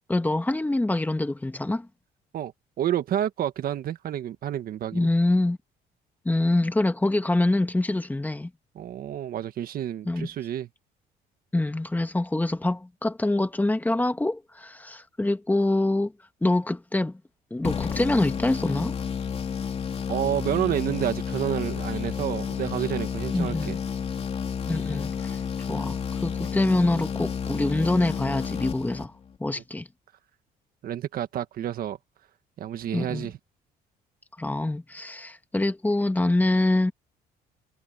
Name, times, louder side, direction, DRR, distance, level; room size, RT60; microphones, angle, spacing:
voice 1, 0.1-1.9 4.9-5.6 6.3-8.5 10.1-10.3 11.5-16.1 16.4-17.1 17.5-19.0 23.3-23.8 24.7-25.4 25.7-29.1 29.4-29.9 32.9-33.3 34.4-36.9, left 2 dB, 10° left, 2.0 m, -25 dB
voice 2, 2.8-5.1 8.7-10.7 20.1-23.8 29.6-29.7 30.8-32.0 32.6-33.4, right 11 dB, 60° right, 1.6 m, -29 dB
sound 1, 17.6-29.4, left 6 dB, 35° left, 3.1 m, -31 dB
cardioid pair, 110°, 17 cm